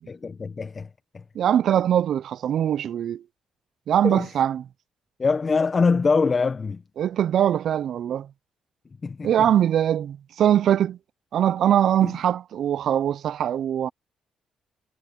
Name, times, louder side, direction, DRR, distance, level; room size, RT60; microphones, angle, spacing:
voice 1, 0.1-1.2 4.0-4.3 5.2-6.8 9.0-9.5 12.0-12.1, left 4 dB, 35° left, 0.9 m, -24 dB
voice 2, 1.3-3.2 3.9-4.6 7.0-8.3 9.2-11.0 11.3-13.9, right 10 dB, 65° right, 0.5 m, -22 dB
cardioid pair, 90°, 0 cm